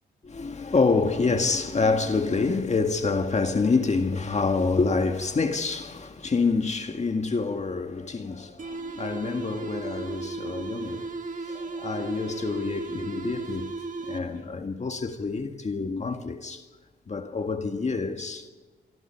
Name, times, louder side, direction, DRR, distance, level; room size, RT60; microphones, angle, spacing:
voice 1, 0.2-11.1 11.4-13.8 14.0-16.6 17.1-18.5, left 4 dB, 40° left, 1.8 m, -27 dB
sound 1, 8.6-14.5, right 3 dB, 45° right, 2.2 m, -35 dB
25.5 x 24.5 x 4.6 m
cardioid pair, 75°, 18 cm